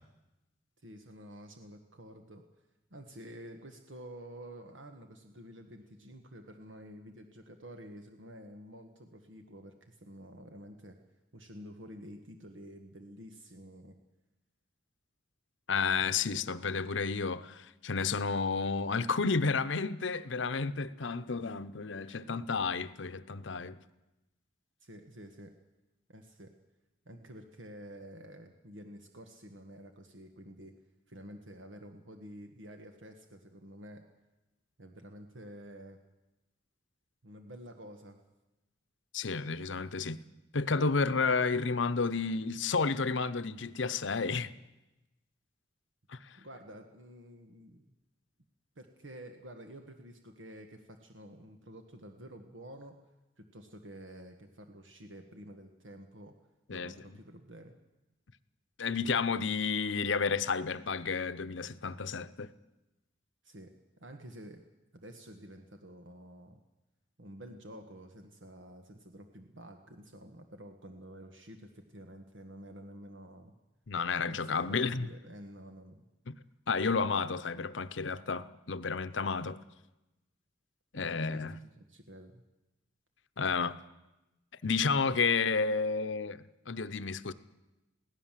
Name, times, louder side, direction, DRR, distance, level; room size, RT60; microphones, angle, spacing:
voice 1, 0.8-2.4 2.9-11.0 11.3-14.0 16.0-16.4 24.8-25.5 26.1-26.5 27.0-30.7 31.1-34.0 34.8-36.0 37.2-38.2 46.4-47.9 48.7-53.0 53.4-56.3 56.7-57.7 63.4-63.7 64.0-64.6 64.9-66.6 67.2-73.5 74.3-76.0 80.9-82.4 85.1-85.2, right 1 dB, 85° right, 1.6 m, -50 dB
voice 2, 15.7-23.8 39.1-40.2 40.5-44.5 46.1-46.2 56.7-56.9 58.8-62.5 73.9-75.1 76.3-76.4 76.7-79.6 80.9-81.6 83.4-83.8 84.6-87.3, left 4 dB, 80° left, 0.8 m, -31 dB
22.5 x 17.0 x 7.5 m
head